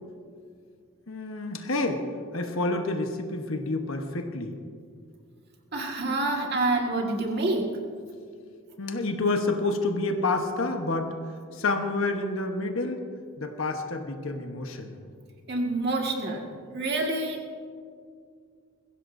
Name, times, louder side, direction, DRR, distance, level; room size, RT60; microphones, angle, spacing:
voice 1, 1.1-2.0 2.3-4.5 8.8-11.1 11.6-13.1 13.4-15.0, left 2 dB, 70° left, 4 dB, 1.1 m, -28 dB
voice 2, 5.7-7.8 15.5-16.4 16.7-17.4, right 2 dB, 45° right, 1 dB, 1.9 m, -27 dB
21.5 x 16.0 x 2.7 m, 2.2 s
head